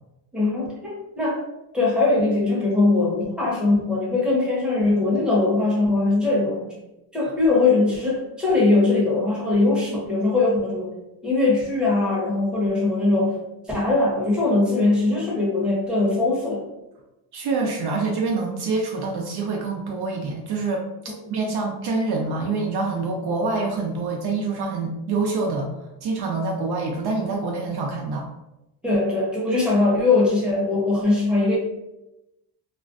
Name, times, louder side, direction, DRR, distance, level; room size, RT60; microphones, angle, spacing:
voice 1, 0.3-1.4 1.7-6.7 7.1-11.0 11.2-13.4 13.7-16.6 28.8-31.6, left 3 dB, ahead, -5 dB, 0.8 m, -21 dB
voice 2, 17.3-20.8 21.3-25.7 26.0-28.3, right 3 dB, 60° right, 0 dB, 0.5 m, -26 dB
2.4 x 2.2 x 2.4 m, 0.94 s
cardioid pair, 100°, 46 cm